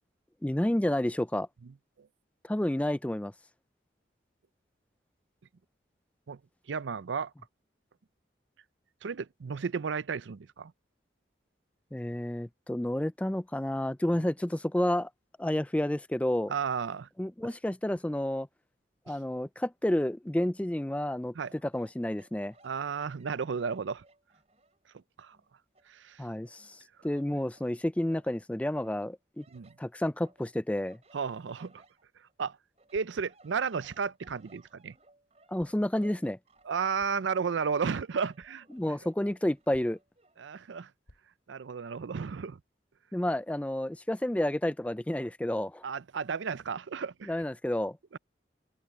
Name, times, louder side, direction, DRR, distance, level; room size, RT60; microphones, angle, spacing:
voice 1, 0.4-1.5 2.4-3.3 11.9-15.1 15.4-16.5 17.2-18.5 19.1-22.5 26.2-29.4 29.8-31.0 35.5-36.4 38.7-40.0 43.1-45.9 47.3-48.0, left 1 dB, 5° left, 0.3 m, -30 dB
voice 2, 6.7-7.3 9.0-10.7 16.5-17.1 21.4-21.5 22.6-24.0 25.2-25.4 25.9-26.2 29.5-29.7 31.1-31.8 32.4-32.6 32.9-34.9 36.7-38.6 40.4-40.9 41.5-42.6 45.8-47.4 48.1-48.2, right 6 dB, 90° right, 0.5 m, -33 dB
sound 1, 21.4-24.9 25.3-27.1 27.5-28.4 28.8-32.4 32.8-40.4, right 2 dB, 35° right, 5.6 m, -62 dB
sound 2, 31.8-31.9 32.9-33.3 34.2-34.7 35.6-36.0 37.0-37.3 38.4-38.6 39.7-40.2 41.1-41.5, equal, 75° left, 3.3 m, -60 dB
open air
head